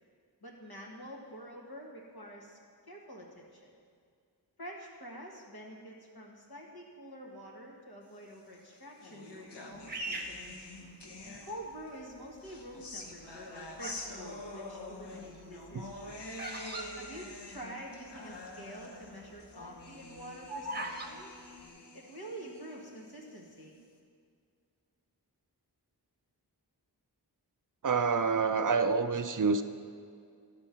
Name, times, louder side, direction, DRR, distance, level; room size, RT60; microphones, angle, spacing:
voice 1, 0.4-2.6 2.9-3.7 4.6-10.4 11.2-16.2 17.0-21.3 21.9-23.7, equal, 65° left, -2 dB, 1.6 m, -47 dB
sound 1, 8.5-11.9 12.4-23.8, left 2 dB, 85° left, 1.0 m, -47 dB
Bird vocalization bird call bird song, 9.9-11.4 12.0-12.5 13.2-14.1 14.4-17.9 18.2-18.3 18.4-18.8 19.2-21.1, right 1 dB, 25° right, 0.9 m, -41 dB
voice 2, 27.8-29.6, right 5 dB, 50° right, 9 dB, 0.5 m, -27 dB
12.0 x 4.5 x 5.7 m, 2.2 s
wide cardioid pair, 55°, 40 cm